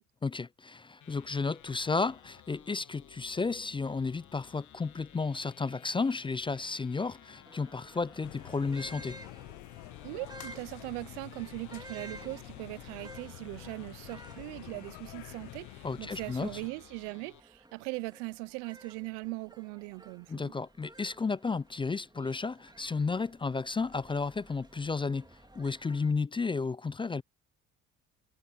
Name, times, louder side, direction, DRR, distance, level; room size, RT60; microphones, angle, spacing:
voice 1, 0.2-9.2 15.8-16.6 20.3-27.2, left 4 dB, 15° left, 0.4 m, -33 dB
sound 1, 1.0-17.4, left 11 dB, 55° left, 1.4 m, -57 dB
sound 2, 7.5-26.1, right 2 dB, 10° right, 2.7 m, -54 dB
sound 3, 8.2-16.7, left 22 dB, 75° left, 0.7 m, -48 dB
voice 2, 10.0-20.5, right 27 dB, 90° right, 0.5 m, -40 dB
supercardioid pair, 65°, 35 cm